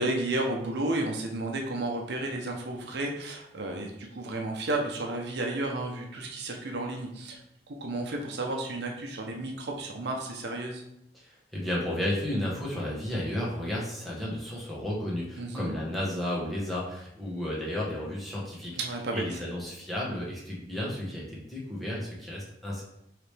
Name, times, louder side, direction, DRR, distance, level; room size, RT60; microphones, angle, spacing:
voice 1, 0.0-7.4 7.7-10.8 15.4-15.8 18.7-19.4, right 2 dB, 70° right, 1 dB, 0.7 m, -32 dB
voice 2, 11.1-18.7 19.1-22.8, left 1 dB, ahead, -6 dB, 1.1 m, -33 dB
4.8 x 3.3 x 3.3 m, 0.80 s
head